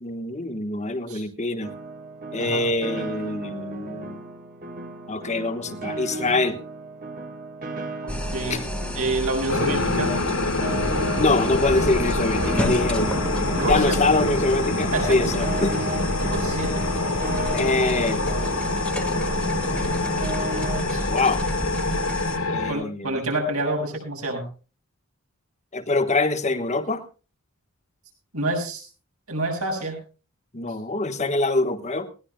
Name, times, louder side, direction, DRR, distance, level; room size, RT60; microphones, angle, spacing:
voice 1, 0.0-1.7 2.3-4.2 5.1-6.6 8.5-8.6 11.2-13.2 13.7-15.8 17.5-18.2 21.1-21.4 22.5-23.2 25.7-27.0 30.5-32.1, left 2 dB, 30° left, 9 dB, 1.3 m, -24 dB
Piano, 1.6-20.8, right 3 dB, 40° right, 1.6 m, -36 dB
voice 2, 8.0-8.6 8.9-10.1 13.5-14.0 14.9-15.4 16.2-16.8 20.9-21.0 22.7-24.5 28.3-28.8 29.3-30.0, right 2 dB, 75° right, 1 dB, 7.1 m, -27 dB
sound 1, 8.1-22.4, left 1 dB, 5° left, 1.5 m, -31 dB
sound 2, 9.5-22.7, left 2 dB, 80° left, 3.1 m, -26 dB
20.5 x 18.0 x 2.2 m, 0.35 s
head